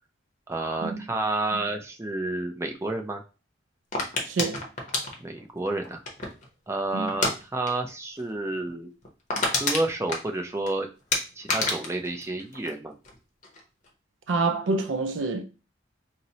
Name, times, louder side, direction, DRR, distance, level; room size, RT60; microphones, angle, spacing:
voice 1, 0.5-3.2 5.2-6.0 6.7-8.9 9.6-10.9 11.4-13.0, right 2 dB, 15° right, 0.4 m, -30 dB
sound 1, 3.9-6.5 7.1-7.4 7.6-7.9 8.2-8.3 8.7-8.8 9.0-10.7 11.1-13.1 13.4-13.9, left 3 dB, 40° left, 0.7 m, -28 dB
voice 2, 4.2-4.6 6.9-7.1 14.3-15.4, right 3 dB, 85° right, 0.4 m, -27 dB
4.1 x 2.0 x 2.7 m
head